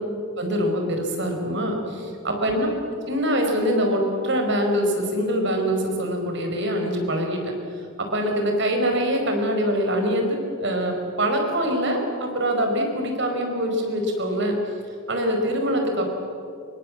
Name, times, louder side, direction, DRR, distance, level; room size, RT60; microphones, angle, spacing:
voice 1, 0.4-2.7 3.1-7.5 8.0-14.6 15.1-16.1, equal, 55° right, 3 dB, 5.1 m, -24 dB
26.5 x 24.0 x 7.6 m, 2.6 s
head